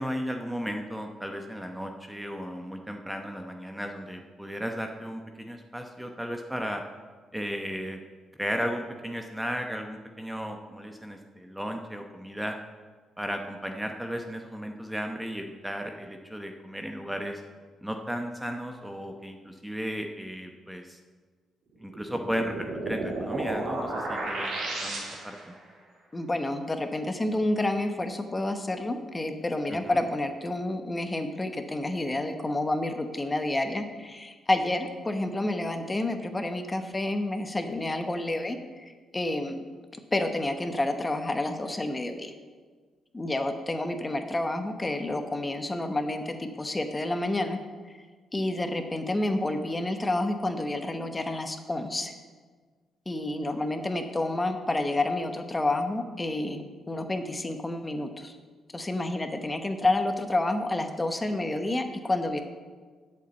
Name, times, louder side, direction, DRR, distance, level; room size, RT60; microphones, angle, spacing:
voice 1, 0.0-6.8 7.3-8.0 8.4-12.6 13.2-17.4 17.8-21.0 21.8-25.5 29.7-30.0, equal, 5° right, 4 dB, 0.9 m, -35 dB
sound 1, 21.9-25.5, right 2 dB, 70° right, 2.9 m, -33 dB
voice 2, 26.1-39.6 40.1-42.3 43.1-47.6 47.9-48.0 48.3-52.1 53.1-58.3 58.7-62.4, left 2 dB, 20° left, 7 dB, 1.0 m, -29 dB
8.1 x 7.0 x 8.0 m, 1.5 s
cardioid pair, 90°, 0 cm